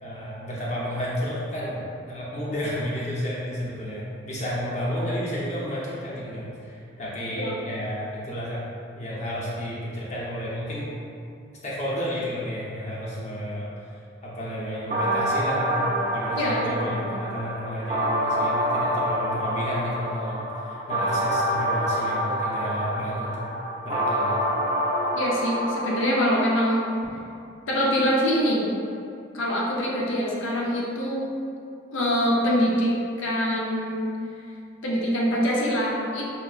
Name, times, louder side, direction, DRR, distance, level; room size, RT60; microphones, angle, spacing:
voice 1, 0.0-8.7 8.9-10.9 11.6-23.4 23.8-24.6, equal, 35° left, -7 dB, 0.7 m, -31 dB
sound 1, 14.9-26.9, equal, 30° right, 0.5 m, -27 dB
voice 2, 16.4-17.1 25.1-26.8 27.7-28.7 29.3-31.2 31.9-34.1 34.8-36.2, equal, 90° left, -4 dB, 0.6 m, -24 dB
5.6 x 2.0 x 2.4 m, 2.5 s
head